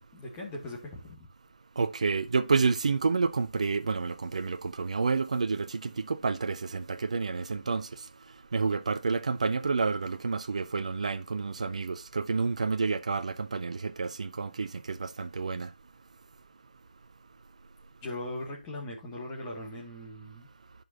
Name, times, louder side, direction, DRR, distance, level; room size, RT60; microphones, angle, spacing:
voice 1, 0.1-1.2 18.0-20.5, left 1 dB, 10° left, 2.2 m, -39 dB
voice 2, 1.8-7.9 8.5-15.7, right 4 dB, 45° right, 0.6 m, -29 dB
14.0 x 5.4 x 2.8 m
figure-of-eight pair, 160°, 5 cm